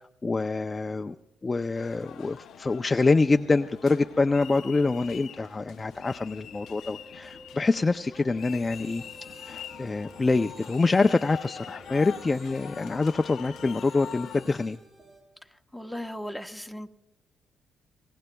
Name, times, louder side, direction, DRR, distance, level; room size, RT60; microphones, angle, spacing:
voice 1, 0.2-1.2 1.4-9.0 9.5-14.8, left 3 dB, 25° left, 7 dB, 0.4 m, -25 dB
sound 1, 1.7-14.7, left 9 dB, 75° left, 0.7 m, -44 dB
Wind instrument woodwind instrument, 6.7-14.5, right 1 dB, 25° right, 2.5 m, -51 dB
sound 2, 8.4-15.2, right 2 dB, 40° right, 7.2 m, -54 dB
voice 2, 15.7-16.9, equal, ahead, 5 dB, 1.0 m, -36 dB
27.0 x 18.5 x 2.3 m, 0.98 s
cardioid pair, 90°, 0 cm